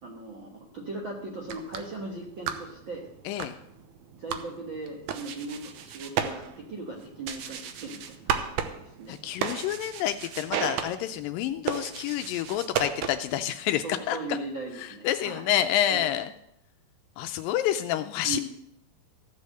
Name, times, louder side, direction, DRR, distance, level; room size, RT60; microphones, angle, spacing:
voice 1, 0.0-3.1 4.2-9.2 13.8-15.4 15.9-16.2 18.2-18.4, right 2 dB, 55° right, -2 dB, 1.3 m, -38 dB
sound 1, 1.3-13.4, right 8 dB, 75° right, 1.9 m, -35 dB
voice 2, 3.3-3.6 9.1-14.2 14.8-16.3 17.2-18.4, left 11 dB, 80° left, 9 dB, 2.1 m, -28 dB
15.0 x 5.5 x 7.5 m, 0.76 s
omnidirectional pair, 4.3 m